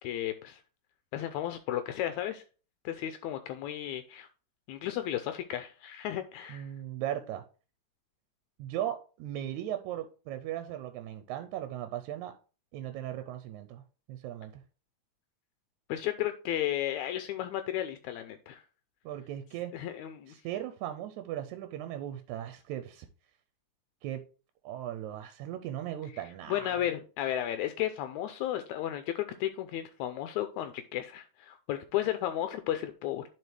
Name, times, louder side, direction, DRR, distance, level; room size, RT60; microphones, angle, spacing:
voice 1, 0.0-0.6 1.1-2.4 2.9-4.3 4.7-6.7 15.9-18.6 19.7-20.3 26.5-33.2, left 12 dB, 80° left, 1.9 m, -34 dB
voice 2, 6.5-7.4 8.6-12.3 12.7-14.6 19.1-19.7 20.3-23.1 24.0-24.2 24.6-26.8, right 12 dB, 90° right, 2.0 m, -38 dB
11.0 x 4.6 x 3.2 m
omnidirectional pair, 3.3 m